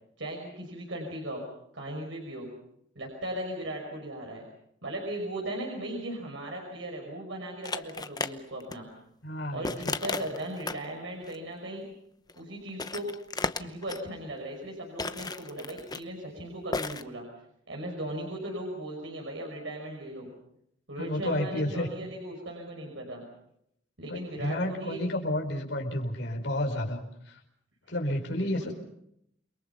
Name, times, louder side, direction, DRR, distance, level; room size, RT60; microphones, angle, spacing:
voice 1, 0.2-1.4 1.7-2.5 3.0-4.4 4.8-8.9 9.5-11.9 12.4-13.1 13.6-17.2 17.7-20.3 20.9-23.2 24.0-25.0 28.3-28.7, right 1 dB, 85° right, 0 dB, 5.7 m, -37 dB
sound 1, 7.6-8.3 8.6-8.8 9.6-10.9 11.2-11.4 12.3-12.4 12.7-14.0 15.0-16.0 16.7-17.0, left 3 dB, 20° left, 0.9 m, -34 dB
voice 2, 9.2-9.9 21.0-21.9 24.1-27.0 27.9-28.7, left 1 dB, 70° left, 2 dB, 5.0 m, -31 dB
29.0 x 23.0 x 5.7 m, 0.75 s
head